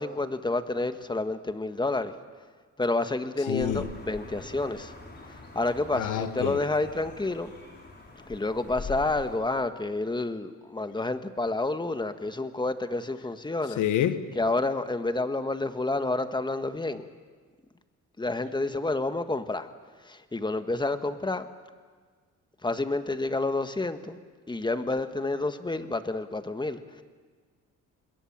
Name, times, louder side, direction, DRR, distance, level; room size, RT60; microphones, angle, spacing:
voice 1, 0.0-2.1 2.8-4.9 5.3-7.5 8.3-13.8 14.4-17.1 18.2-19.7 20.0-21.5 22.6-24.2 24.5-27.0, left 2 dB, 15° left, 9 dB, 1.5 m, -29 dB
voice 2, 3.5-3.9 5.9-6.6 13.8-14.2, left 10 dB, 80° left, 11 dB, 1.5 m, -27 dB
sound 1, 3.6-9.4, left 3 dB, 35° left, 5.3 m, -44 dB
26.5 x 21.5 x 7.4 m, 1.5 s
cardioid pair, 90°, 30 cm